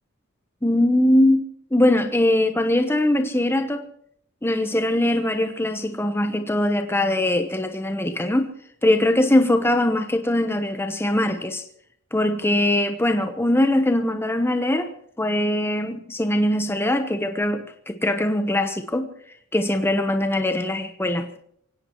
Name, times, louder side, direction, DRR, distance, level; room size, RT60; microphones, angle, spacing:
voice 1, 0.6-1.4 1.7-3.9 4.4-8.5 8.8-11.6 12.1-14.9 15.2-19.1 19.5-21.3, left 1 dB, 10° left, 1.0 m, -21 dB
24.0 x 17.5 x 3.1 m
head